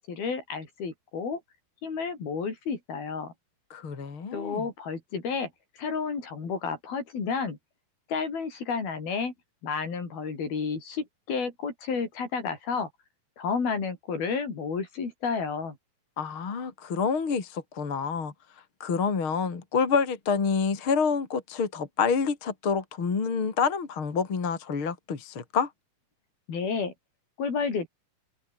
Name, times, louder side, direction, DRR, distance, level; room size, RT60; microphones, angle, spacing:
voice 1, 0.0-1.4 1.8-3.3 4.3-5.5 5.8-7.6 8.1-9.3 9.6-12.9 13.4-15.8 26.5-26.9 27.4-27.9, left 5 dB, 60° left, 6.9 m, -31 dB
voice 2, 3.7-4.6 16.2-18.3 18.8-25.7, left 5 dB, 35° left, 3.5 m, -28 dB
omnidirectional pair, 4.8 m